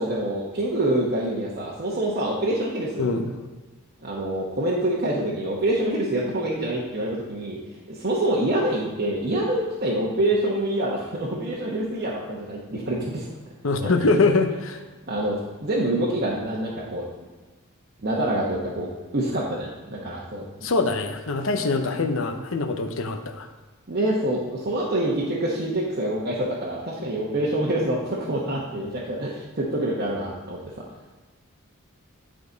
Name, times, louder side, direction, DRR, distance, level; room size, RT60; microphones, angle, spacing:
voice 1, 0.0-3.1 4.0-7.6 7.9-13.3 13.8-13.9 15.1-17.0 18.0-20.5 23.9-30.7, right 1 dB, 45° right, -5 dB, 1.0 m, -26 dB
voice 2, 3.0-3.3 13.6-14.8 20.6-23.5, left 3 dB, 65° left, 6 dB, 0.7 m, -23 dB
11.0 x 5.0 x 3.9 m, 1.3 s
head